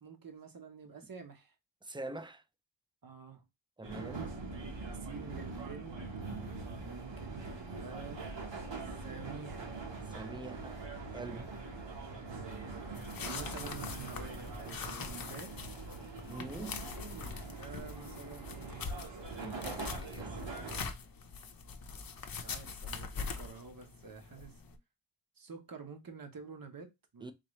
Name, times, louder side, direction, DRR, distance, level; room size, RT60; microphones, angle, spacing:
voice 1, 0.0-1.5 3.0-3.4 4.8-6.0 6.8-8.2 9.0-9.7 10.3-10.7 12.3-15.5 16.5-18.9 22.3-24.6 25.4-27.3, right 5 dB, 45° right, 1.0 m, -49 dB
voice 2, 1.8-2.4 3.8-4.4 10.1-10.8 11.1-11.5 16.3-16.7 19.3-20.8 27.2-27.3, right 2 dB, 10° right, 0.4 m, -45 dB
sound 1, 3.8-20.8, right 3 dB, 65° right, 1.3 m, -43 dB
sound 2, 12.9-24.8, left 5 dB, 50° left, 0.7 m, -43 dB
3.8 x 2.9 x 3.1 m
wide cardioid pair, 105°, 47 cm